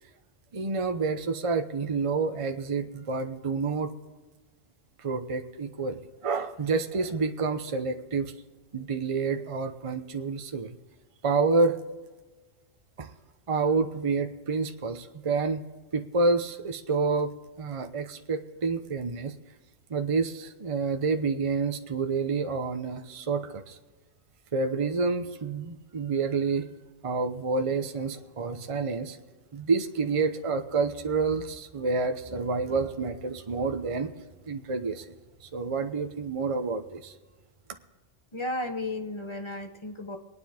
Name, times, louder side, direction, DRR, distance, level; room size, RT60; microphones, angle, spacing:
voice 1, 0.5-3.9 5.0-8.3 8.7-10.7 11.2-11.8 13.0-13.1 13.5-15.6 15.9-19.3 19.9-23.8 24.5-26.7 27.0-29.2 29.5-34.1 34.5-35.1 35.4-37.1, right 4 dB, 30° right, 6 dB, 0.7 m, -28 dB
voice 2, 38.3-40.2, left 2 dB, 25° left, 4 dB, 1.0 m, -34 dB
24.0 x 9.7 x 3.6 m, 1.3 s
omnidirectional pair, 1.3 m